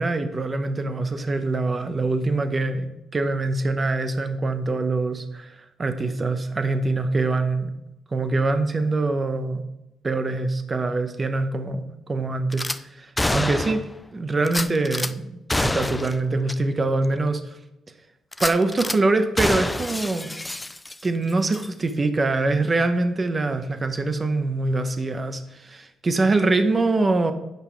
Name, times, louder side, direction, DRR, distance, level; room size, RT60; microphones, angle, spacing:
voice 1, 0.0-7.7 8.1-9.6 10.0-13.8 14.1-17.6 18.4-20.4 21.0-27.3, right 3 dB, 30° right, 8 dB, 1.0 m, -24 dB
Gunshot gunfire / Glass, 12.5-12.8 13.2-13.9 14.5-15.1 15.5-16.2 16.5-16.6 17.0-17.1 18.3-19.0 19.4-21.2 21.5-21.7, left 1 dB, 10° left, 0.4 m, -27 dB
9.2 x 5.4 x 4.6 m, 0.90 s
cardioid pair, 90°, 0 cm